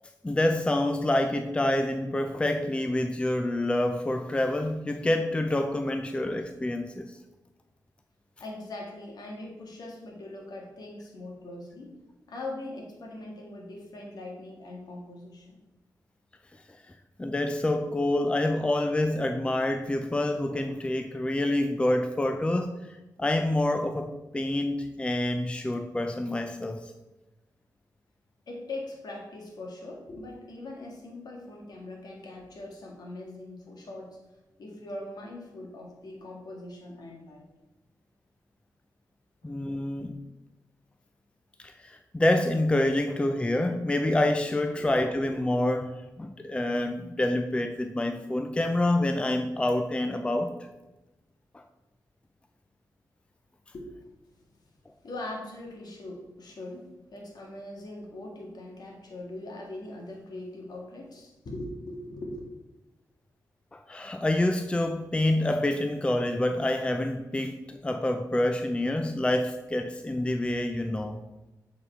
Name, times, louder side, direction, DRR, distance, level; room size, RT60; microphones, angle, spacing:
voice 1, 0.2-7.2 17.2-22.7 23.2-26.9 39.4-40.2 41.6-50.6 51.5-51.6 63.7-71.2, left 1 dB, 15° left, 0.5 m, -27 dB
voice 2, 8.4-11.9 12.3-15.6 28.5-34.2 34.6-37.5 39.4-39.5 44.8-44.9 53.7-54.1 55.0-62.4, left 2 dB, 65° left, 1.9 m, -41 dB
7.7 x 4.2 x 4.4 m
cardioid pair, 85°, 7 cm